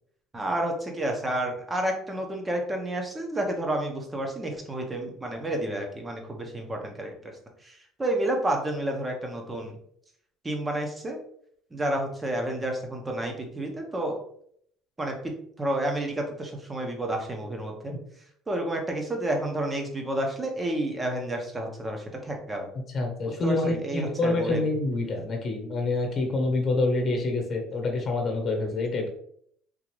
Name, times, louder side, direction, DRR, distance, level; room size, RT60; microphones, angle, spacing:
voice 1, 0.3-7.2 7.6-9.8 10.4-11.2 11.7-14.2 15.0-17.9 18.5-22.7 23.2-24.6, right 1 dB, 20° right, 2 dB, 1.0 m, -30 dB
voice 2, 22.9-29.1, left 2 dB, 40° left, 2 dB, 1.2 m, -27 dB
3.8 x 2.8 x 3.1 m, 0.66 s
supercardioid pair, 100°, 0 cm